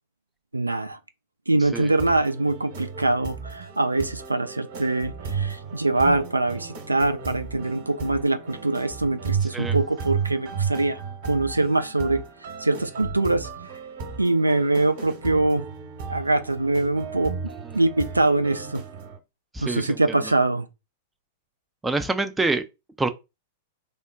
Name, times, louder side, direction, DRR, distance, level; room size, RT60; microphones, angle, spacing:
voice 1, 0.5-1.0 1.5-12.2 12.6-13.5 14.2-15.7 16.1-17.3 17.7-18.8 19.6-20.7, right 2 dB, 80° right, 0.4 m, -23 dB
sound 1, 1.8-19.2, right 6 dB, 50° right, 0.9 m, -34 dB
voice 2, 19.5-20.3 21.8-22.6 23.0-23.1, right 3 dB, 10° right, 0.4 m, -26 dB
3.5 x 2.1 x 3.6 m
figure-of-eight pair, 95°, 0 cm